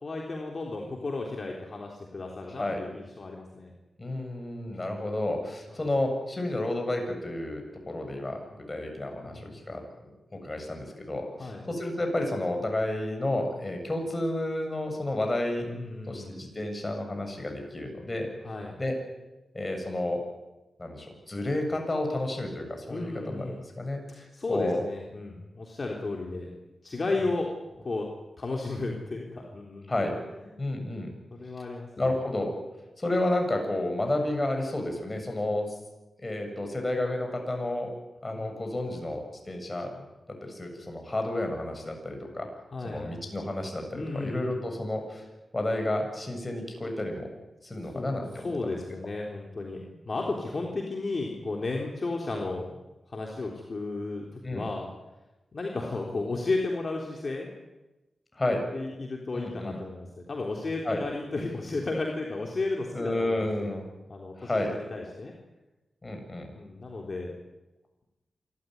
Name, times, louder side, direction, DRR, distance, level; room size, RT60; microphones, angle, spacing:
voice 1, 0.0-3.7 4.7-5.0 5.7-5.9 9.2-9.5 11.4-11.6 15.7-16.4 18.4-18.7 22.9-23.6 24.1-26.5 26.8-27.5 27.8-28.1 28.4-29.9 30.4-30.5 31.3-32.1 38.3-38.5 42.7-43.2 43.9-44.6 47.9-48.1 48.4-52.8 53.1-54.9 55.5-57.5 58.7-63.7 64.0-65.3 66.5-67.3, left 3 dB, 50° left, 0 dB, 3.6 m, -34 dB
voice 2, 2.5-2.8 4.0-8.4 8.7-15.7 16.1-18.3 18.8-19.0 19.5-20.2 20.8-24.8 29.9-30.1 30.6-31.1 32.0-32.5 33.0-35.8 36.2-37.9 38.2-39.2 39.5-39.9 40.4-42.5 42.8-45.2 45.5-47.3 47.6-48.7 54.4-54.7 58.4-58.6 59.3-59.8 60.8-61.0 62.9-63.9 64.4-64.7 66.0-66.5, left 1 dB, 30° left, 4 dB, 7.6 m, -31 dB
27.5 x 13.5 x 9.6 m, 1.1 s
cardioid pair, 55°, 0 cm